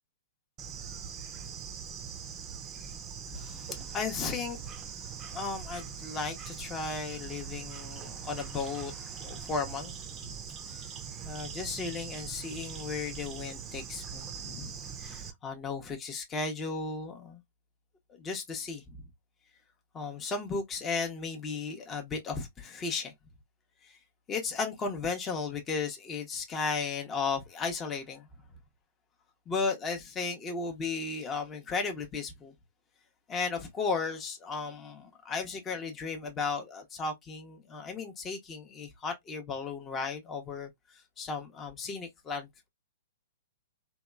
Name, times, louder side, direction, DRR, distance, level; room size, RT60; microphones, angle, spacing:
Bird / Insect, 0.6-15.3, right 7 dB, 25° right, 0.5 m, -42 dB
voice 1, 3.3-4.6 5.2-10.0 10.7-10.9 11.3-14.7 15.0-17.4 18.2-19.0 19.9-23.1 23.8-24.0 24.3-28.3 29.5-32.5 33.3-42.7, left 4 dB, 20° left, 0.6 m, -35 dB
2.8 x 2.2 x 2.2 m
hypercardioid pair, 125°, 0 cm